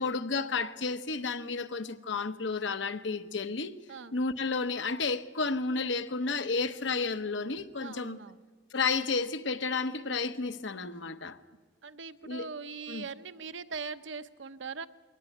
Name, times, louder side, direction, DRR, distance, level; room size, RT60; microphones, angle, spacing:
voice 1, 0.0-3.8 4.1-8.2 8.7-11.4 12.2-12.5 12.9-13.0, left 4 dB, 80° left, 1.0 m, -32 dB
voice 2, 7.8-8.4 11.8-14.9, right 5 dB, 80° right, 0.8 m, -41 dB
22.0 x 18.0 x 9.4 m
head